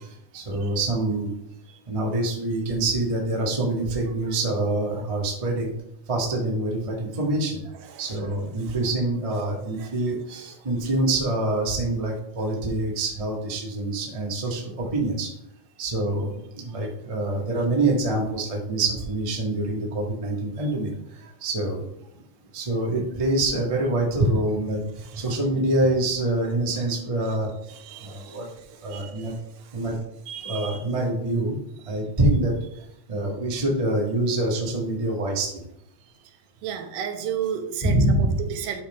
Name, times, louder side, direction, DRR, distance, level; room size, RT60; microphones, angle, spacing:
voice 1, 0.3-1.3 1.9-5.7 6.1-7.6 8.0-15.3 15.8-20.9 21.4-21.9 22.5-24.8 25.1-27.5 28.0-28.4 28.8-29.3 29.7-30.0 30.4-31.6 31.9-32.5 33.1-35.6 37.8-38.4, right 2 dB, 40° right, -2 dB, 0.5 m, -25 dB
voice 2, 27.7-28.5 28.8-29.7 30.3-30.8 36.6-38.0 38.4-38.8, right 8 dB, 80° right, 6 dB, 2.4 m, -33 dB
11.0 x 4.2 x 3.7 m, 0.80 s
omnidirectional pair, 3.9 m